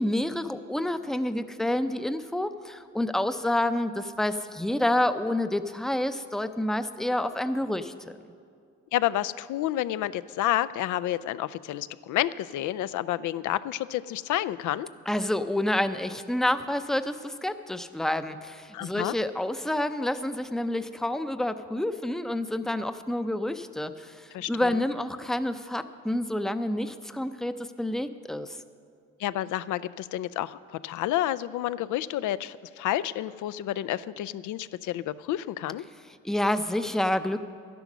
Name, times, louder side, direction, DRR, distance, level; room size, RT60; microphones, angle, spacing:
voice 1, 0.0-8.2 15.1-28.6 36.2-37.4, left 1 dB, ahead, 10 dB, 0.5 m, -28 dB
voice 2, 8.9-14.9 18.7-19.1 24.3-24.8 29.2-35.8, left 13 dB, 75° left, 15 dB, 0.5 m, -30 dB
12.0 x 10.5 x 6.1 m, 2.4 s
cardioid pair, 90°, 30 cm